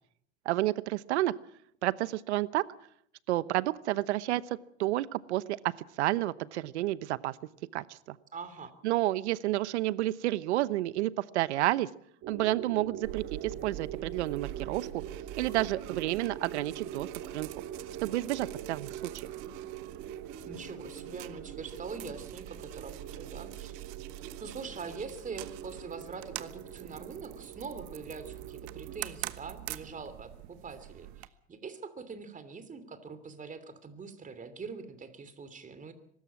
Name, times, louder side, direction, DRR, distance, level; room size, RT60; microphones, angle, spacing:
voice 1, 0.4-1.3 1.8-2.6 3.3-4.4 4.8-5.6 6.0-7.4 7.7-8.2 8.8-11.9 12.3-15.0 15.4-17.5 18.0-19.0, right 16 dB, 85° right, 18 dB, 1.0 m, -30 dB
voice 2, 8.3-8.7 20.5-23.9 24.4-35.9, right 5 dB, 25° right, 11 dB, 3.0 m, -43 dB
sound 1, 12.2-29.0, right 9 dB, 45° right, 2.4 m, -44 dB
sound 2, 13.0-31.3, right 17 dB, 65° right, 1.3 m, -45 dB
23.0 x 13.5 x 8.6 m, 0.69 s
supercardioid pair, 110°, 33 cm